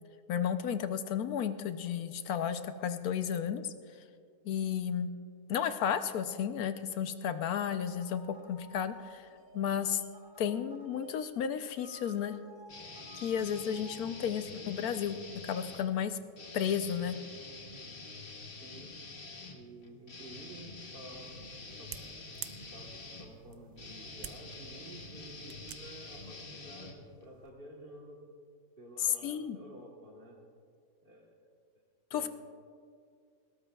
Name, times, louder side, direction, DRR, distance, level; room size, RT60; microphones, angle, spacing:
voice 1, 0.3-3.6 4.4-5.1 5.5-9.2 9.5-10.0 10.4-12.3 13.1-15.2 15.4-16.2 16.5-17.2 29.2-29.6 32.1-32.3, left 8 dB, 80° left, 10 dB, 1.2 m, -33 dB
sound 1, 7.8-14.3, right 1 dB, 55° right, 1.5 m, -54 dB
sound 2, 12.7-15.9 16.3-27.5, left 3 dB, 40° left, 1.3 m, -47 dB
voice 2, 14.0-14.7 18.6-18.9 19.5-21.3 21.8-21.9 22.7-22.9 23.2-28.2 28.8-30.4 31.0-31.3 32.1-32.3, right 1 dB, 40° right, -3 dB, 1.5 m, -51 dB
sound 3, 21.1-26.5, right 11 dB, 75° right, 1.0 m, -50 dB
20.5 x 17.5 x 2.3 m, 2.2 s
omnidirectional pair, 1.6 m